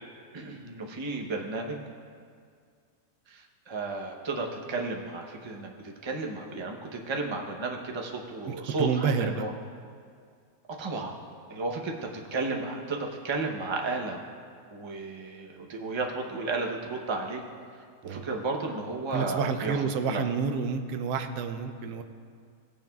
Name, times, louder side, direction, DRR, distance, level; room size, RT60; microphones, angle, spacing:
voice 1, 0.3-1.8 3.3-9.5 10.8-11.1 11.5-14.3 14.7-17.4 18.0-20.3, right 3 dB, 25° right, 1 dB, 0.6 m, -33 dB
voice 2, 8.5-9.4 18.0-18.2 19.1-22.0, right 6 dB, 90° right, 8 dB, 1.2 m, -29 dB
17.5 x 9.0 x 2.3 m, 2.2 s
omnidirectional pair, 1.6 m